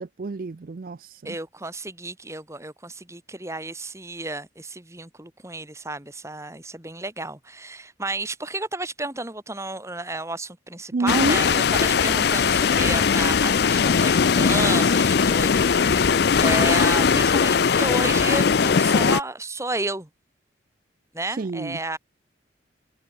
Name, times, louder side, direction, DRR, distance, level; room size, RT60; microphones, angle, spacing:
voice 1, 0.0-1.4 10.9-11.4 21.3-21.8, right 3 dB, 50° right, 0.4 m, -28 dB
voice 2, 1.2-20.1 21.1-22.0, right 2 dB, 15° right, 3.2 m, -32 dB
sound 1, 11.1-19.2, left 6 dB, 60° left, 0.5 m, -19 dB
head